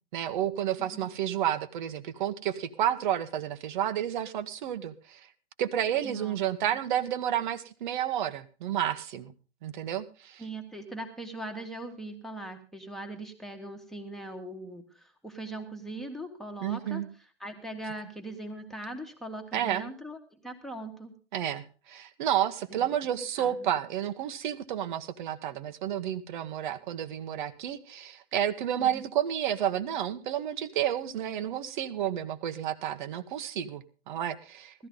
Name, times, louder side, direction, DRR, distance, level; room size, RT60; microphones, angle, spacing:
voice 1, 0.1-5.3 5.6-9.3 9.6-10.4 16.6-17.1 19.5-19.9 21.3-34.9, right 10 dB, 45° right, 12 dB, 1.3 m, -31 dB
voice 2, 6.0-6.4 10.4-17.0 17.4-20.2 20.4-21.1 22.7-22.9 23.4-23.7 28.8-29.0 34.8-34.9, right 1 dB, ahead, 3 dB, 1.8 m, -40 dB
16.5 x 13.0 x 3.9 m, 0.36 s
hypercardioid pair, 130°, 34 cm